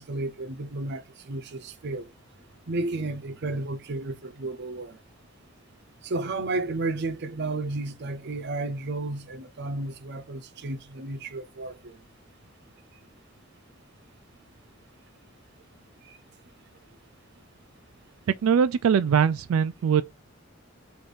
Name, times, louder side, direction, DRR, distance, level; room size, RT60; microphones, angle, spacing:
voice 1, 0.0-2.1 2.7-5.0 6.0-12.0 16.0-16.2, right 2 dB, 55° right, 0.7 m, -32 dB
voice 2, 18.4-20.0, right 7 dB, 85° right, 0.3 m, -21 dB
4.9 x 2.6 x 4.0 m
head